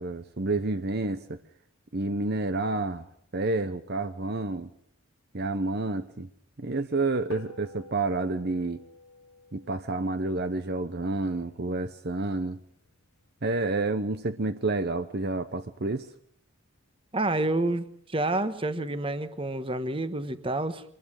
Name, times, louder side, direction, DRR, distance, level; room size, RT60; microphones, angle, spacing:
voice 1, 0.0-1.4 1.9-3.0 3.3-4.7 5.3-6.3 6.6-8.8 9.5-12.6 13.4-16.1, right 2 dB, 45° right, 11 dB, 0.8 m, -29 dB
sound 1, 7.3-12.0, left 4 dB, 80° left, 1.6 m, -49 dB
voice 2, 17.1-20.8, right 2 dB, 25° right, 12 dB, 1.2 m, -29 dB
24.0 x 20.0 x 6.6 m, 0.63 s
head